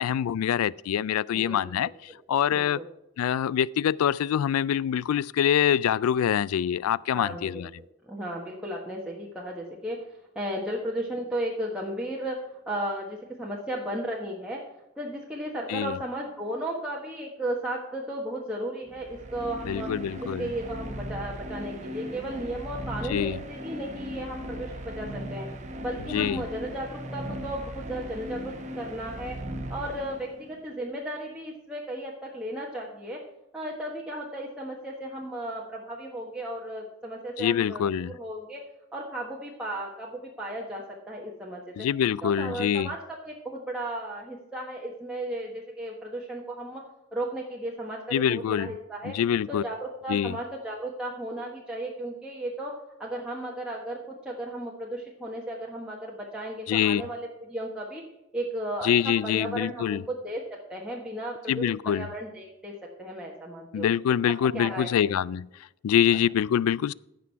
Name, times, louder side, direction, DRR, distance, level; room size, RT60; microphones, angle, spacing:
voice 1, 0.0-2.8 3.2-7.7 15.7-16.0 19.6-20.5 23.1-23.4 26.1-26.4 37.4-38.1 41.8-42.9 48.1-48.7 49.0-49.6 50.1-50.4 56.7-57.0 58.8-60.0 61.5-62.1 63.7-65.5 65.8-66.9, left 9 dB, 80° left, 0.3 m, -25 dB
voice 2, 2.5-2.9 7.1-10.0 10.3-14.6 15.0-19.9 20.4-25.5 25.8-29.3 29.7-33.2 33.5-38.6 38.9-41.6 42.2-43.0 43.2-46.8 47.1-49.1 49.5-52.7 53.0-54.0 54.2-58.0 58.3-60.4 60.7-62.7 63.0-63.9 64.3-65.1, right 1 dB, 5° right, 1.3 m, -35 dB
sound 1, 18.9-30.6, equal, 30° right, 1.1 m, -38 dB
15.5 x 6.1 x 4.6 m
head